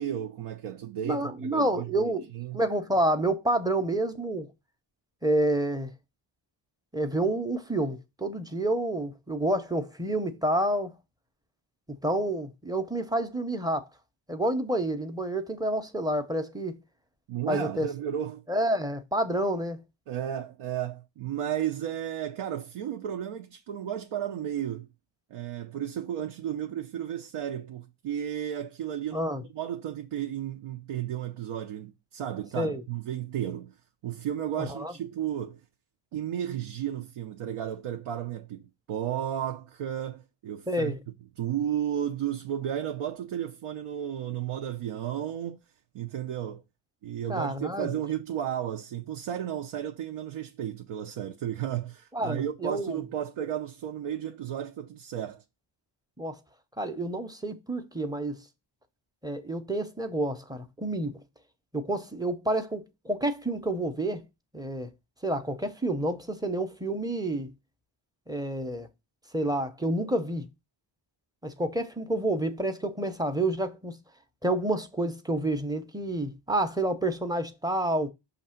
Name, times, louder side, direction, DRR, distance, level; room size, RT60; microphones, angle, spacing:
voice 1, 0.0-2.6 17.3-18.4 20.1-24.9 25.3-33.8 34.0-35.6 36.1-40.9 41.4-45.6 45.9-46.6 47.0-55.4, right 10 dB, 80° right, 0.7 m, -33 dB
voice 2, 1.0-4.5 5.2-5.9 6.9-10.9 12.0-13.9 14.3-16.8 17.5-17.9 18.5-19.8 29.1-29.4 32.6-32.8 34.6-34.9 40.7-41.0 47.3-48.0 52.1-53.0 56.2-56.3 56.8-58.4 59.2-61.2 61.7-64.2 64.5-64.9 65.2-67.5 68.3-68.9 69.3-70.5 71.4-74.0 74.4-78.1, right 1 dB, 10° right, 0.6 m, -29 dB
6.5 x 2.8 x 5.6 m
wide cardioid pair, 140°, 50 cm